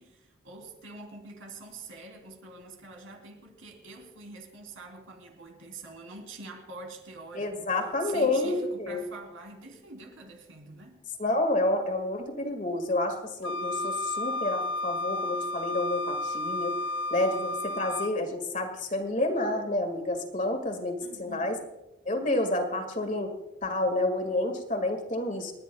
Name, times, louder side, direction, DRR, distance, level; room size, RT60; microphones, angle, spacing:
voice 1, 0.0-7.7 8.0-11.0 21.0-21.6, right 3 dB, 90° right, 2 dB, 3.6 m, -45 dB
voice 2, 7.3-9.0 11.2-16.8 17.1-21.6 22.1-23.3 23.6-25.5, left 2 dB, 40° left, 5 dB, 2.0 m, -29 dB
Wind instrument woodwind instrument, 13.4-18.1, left 2 dB, 70° left, 0.5 m, -32 dB
30.0 x 10.5 x 2.3 m, 0.95 s
head